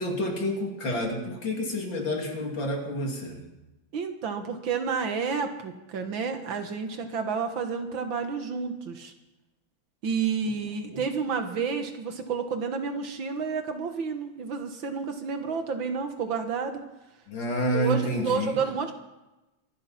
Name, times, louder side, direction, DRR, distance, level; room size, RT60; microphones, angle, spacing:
voice 1, 0.0-3.4 10.9-11.0 17.3-18.7, equal, 65° left, 1 dB, 3.3 m, -29 dB
voice 2, 3.9-9.1 10.0-16.8 17.7-18.9, right 5 dB, 70° right, 6 dB, 2.1 m, -30 dB
24.5 x 11.5 x 4.2 m, 0.99 s
omnidirectional pair, 2.3 m